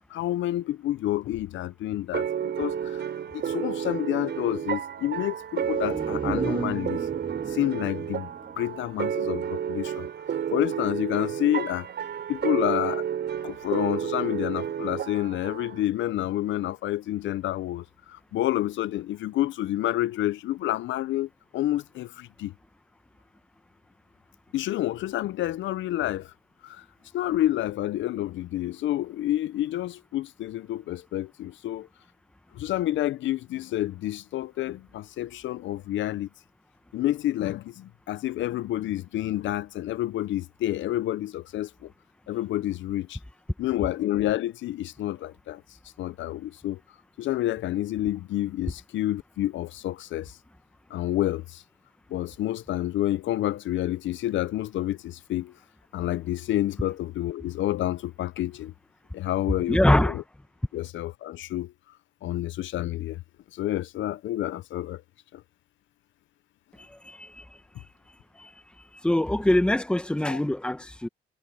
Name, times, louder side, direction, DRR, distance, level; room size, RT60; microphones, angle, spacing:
voice 1, 0.1-3.0 3.3-7.0 7.5-8.3 8.6-10.0 10.5-11.9 12.3-13.0 13.4-22.5 24.5-26.3 26.6-26.8 27.1-31.9 32.5-36.3 36.9-41.9 42.3-43.2 43.6-45.6 46.0-46.8 47.2-50.4 50.9-51.6 52.1-55.5 55.9-58.7 59.1-60.2 60.7-61.7 62.2-63.2 63.5-65.0 65.3-65.4 70.3-70.4, left 14 dB, 70° left, 0.5 m, -29 dB
sound 1, 2.1-15.8, right 8 dB, 60° right, 5.4 m, -31 dB
sound 2, 5.6-9.3 9.7-9.8, right 5 dB, 25° right, 0.6 m, -34 dB
voice 2, 59.7-60.2 66.8-67.4 68.4-68.5 69.0-71.1, left 1 dB, 5° left, 1.0 m, -24 dB
cardioid pair, 90°, 20 cm